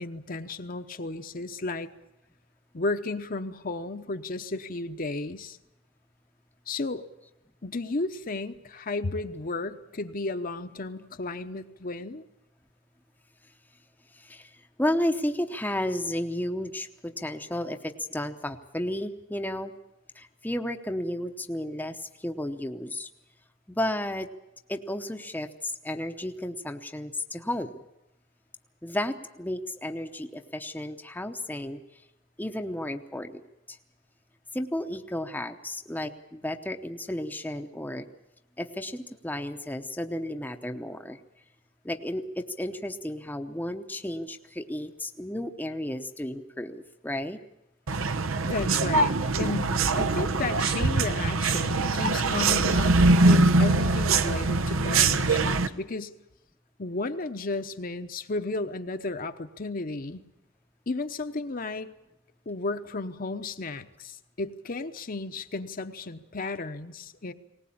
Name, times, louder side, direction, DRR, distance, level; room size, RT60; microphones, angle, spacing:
voice 1, 0.0-1.9 2.7-5.6 6.7-7.0 7.6-12.2 48.4-53.0 53.2-56.1 56.8-60.2 60.9-61.9 62.5-67.3, left 3 dB, 45° left, 8 dB, 0.9 m, -33 dB
voice 2, 14.1-19.7 20.1-23.1 23.7-24.3 24.7-27.7 28.8-32.0 32.4-33.4 33.7-33.8 34.5-38.1 38.6-41.2 41.8-47.4, left 1 dB, 10° left, 5 dB, 0.8 m, -33 dB
sound 1, 47.9-55.7, right 3 dB, 85° right, 1.0 m, -23 dB
20.0 x 19.0 x 8.7 m, 0.88 s
head